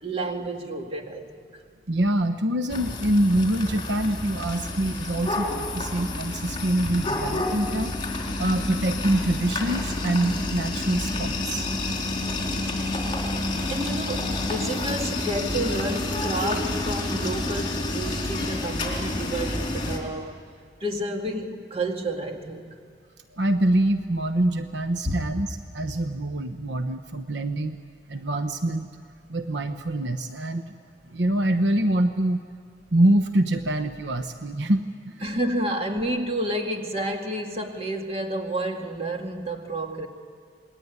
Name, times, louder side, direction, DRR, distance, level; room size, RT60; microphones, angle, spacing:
voice 1, 0.0-1.4 13.7-20.4 20.8-22.8 25.0-25.1 35.2-40.1, right 1 dB, 35° right, 2.3 m, -30 dB
voice 2, 1.9-11.7 12.0-12.3 23.3-27.8 28.1-28.9 29.3-30.8 31.1-32.4 32.9-35.2, right 1 dB, 75° right, 1.1 m, -25 dB
sound 1, 2.7-20.0, left 2 dB, 25° left, 3.9 m, -29 dB
27.5 x 20.5 x 9.6 m
head